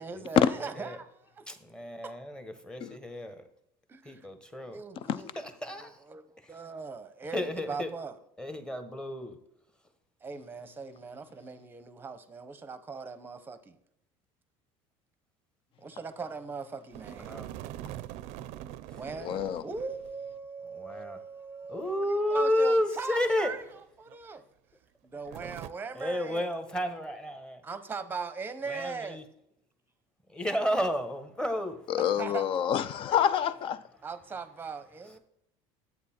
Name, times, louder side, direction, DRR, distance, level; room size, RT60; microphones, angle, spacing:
voice 1, 0.0-1.5 2.0-2.1 3.9-4.3 4.6-5.3 5.6-8.2 10.2-13.8 15.8-17.4 18.9-24.4 25.0-26.5 27.6-29.2 32.0-32.5 34.0-35.2, right 4 dB, 15° right, 0.8 m, -40 dB
voice 2, 1.5-3.4 4.0-4.8 5.6-6.0 7.3-7.9 8.4-9.4 17.3-17.4 19.2-19.4 20.7-21.2 21.7-23.5 25.4-25.5 25.9-27.6 28.7-29.2 30.3-31.8, left 1 dB, 5° left, 1.1 m, -31 dB
sound 1, 16.9-20.1 20.4-20.5 21.8-23.8 24.1-24.2 25.3-25.7, right 13 dB, 60° right, 0.5 m, -44 dB
voice 3, 19.2-19.6 31.9-33.8, left 9 dB, 40° left, 0.6 m, -27 dB
11.0 x 8.3 x 4.3 m
cardioid pair, 145°, 13 cm